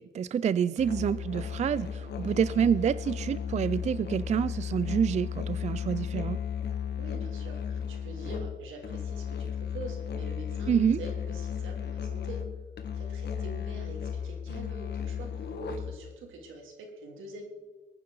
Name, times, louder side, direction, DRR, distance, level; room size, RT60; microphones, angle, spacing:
voice 1, 0.0-6.4 10.7-11.0, right 8 dB, 35° right, 16 dB, 0.4 m, -27 dB
Musical instrument, 0.8-16.1, left 7 dB, 55° left, 1.5 m, -35 dB
voice 2, 7.0-10.7 11.0-12.4 12.9-17.4, right 2 dB, 85° right, 2 dB, 2.9 m, -45 dB
21.5 x 9.6 x 3.9 m, 1.3 s
cardioid pair, 90°, 20 cm